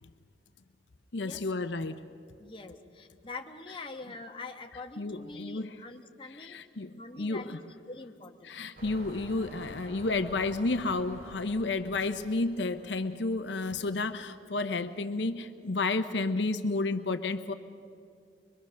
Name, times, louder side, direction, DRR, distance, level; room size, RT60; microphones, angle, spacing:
voice 1, 1.1-2.0 5.0-5.7 6.3-7.6 8.4-17.5, left 3 dB, 80° left, 9 dB, 0.8 m, -31 dB
voice 2, 2.4-6.6 6.9-7.6 7.9-8.6, left 3 dB, 30° left, 3 dB, 1.2 m, -44 dB
sound 1, 8.7-13.7 14.4-14.5, right 1 dB, 55° right, 3.8 m, -49 dB
24.0 x 22.5 x 6.3 m, 2.4 s
head